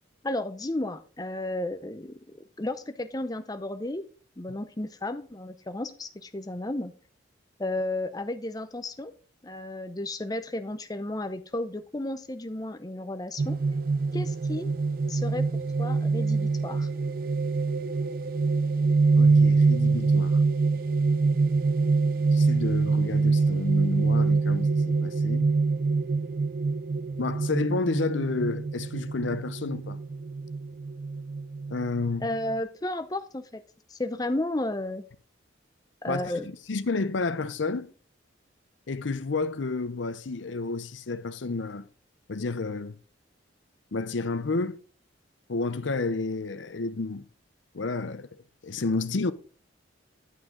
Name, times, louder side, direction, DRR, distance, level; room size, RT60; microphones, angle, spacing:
voice 1, 0.2-4.0 4.4-6.9 7.6-9.1 9.4-13.6 14.1-14.7 15.1-15.5 15.8-16.9 32.2-33.6 33.9-35.0 36.0-36.5, left 1 dB, 20° left, 0.6 m, -33 dB
sound 1, 13.4-32.6, right 4 dB, 50° right, 0.4 m, -25 dB
voice 2, 19.2-20.4 22.3-25.5 27.2-30.0 31.7-32.3 36.1-36.2 36.7-37.9 38.9-41.8 42.3-43.0 43.9-44.8 45.5-47.3 47.7-48.3 48.6-49.3, left 3 dB, 75° left, 0.6 m, -30 dB
11.0 x 6.3 x 3.7 m
head